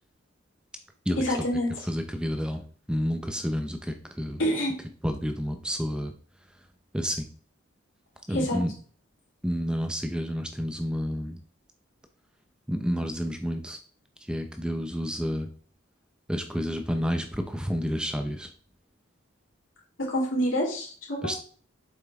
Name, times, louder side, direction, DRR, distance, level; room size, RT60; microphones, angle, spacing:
voice 1, 1.2-1.9 4.4-4.7 8.3-8.6 20.0-21.2, equal, 90° left, -2 dB, 3.3 m, -27 dB
voice 2, 1.9-2.6 2.9-4.4 5.0-6.1 6.9-7.3 8.3-8.7 9.4-11.4 12.7-13.8 14.3-15.5 16.3-18.5 21.2-21.3, equal, 5° right, 6 dB, 0.6 m, -30 dB
7.6 x 5.6 x 3.5 m, 0.43 s
head